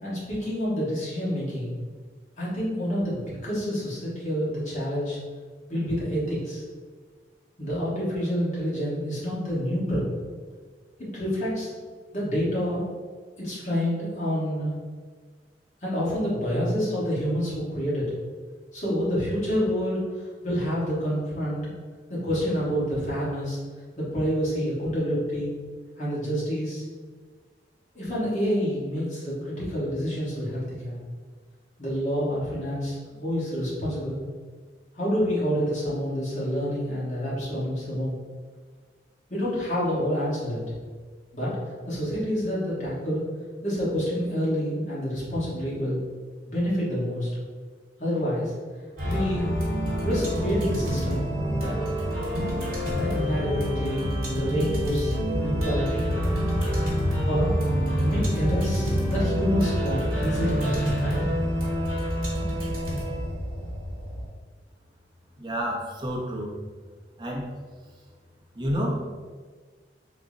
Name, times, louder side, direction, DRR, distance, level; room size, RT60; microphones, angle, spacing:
voice 1, 0.0-1.8 2.4-5.2 5.7-6.6 7.6-10.1 11.0-11.7 12.1-12.8 13.4-14.7 15.8-18.1 18.7-21.6 22.1-23.6 24.0-25.5 26.0-26.8 27.9-31.0 31.8-34.2 34.9-38.2 39.3-40.6 41.3-41.6 41.8-43.3 43.6-46.0 46.4-47.3 48.0-48.5 49.0-49.5 50.0-51.2 51.5-51.8 52.9-56.1 57.2-57.5 58.0-61.2, equal, 40° left, -7 dB, 1.2 m, -28 dB
sound 1, 49.0-64.3, equal, 55° right, 1.1 m, -27 dB
voice 2, 65.4-66.5 67.2-67.5 68.5-69.0, equal, 25° right, -2 dB, 0.5 m, -29 dB
3.7 x 2.0 x 3.7 m, 1.5 s
head